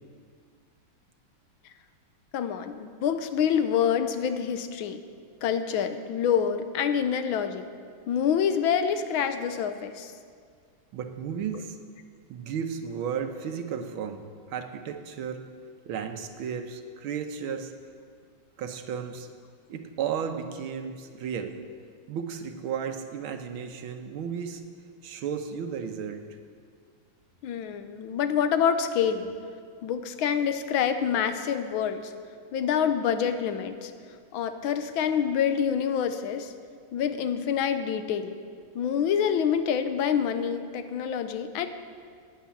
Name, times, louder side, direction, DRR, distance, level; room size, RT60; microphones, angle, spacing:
voice 1, 2.3-5.0 5.4-7.6 8.1-10.1 27.4-29.3 29.8-32.1 32.5-33.9 34.3-36.5 36.9-38.4 38.7-41.7, left 8 dB, 85° left, 9 dB, 1.6 m, -26 dB
voice 2, 10.9-11.8 12.3-15.4 15.9-17.7 18.6-19.3 19.7-21.6 22.1-24.6 25.0-26.2, right 7 dB, 85° right, 6 dB, 1.8 m, -34 dB
11.5 x 9.2 x 8.4 m, 2.1 s
omnidirectional pair, 2.2 m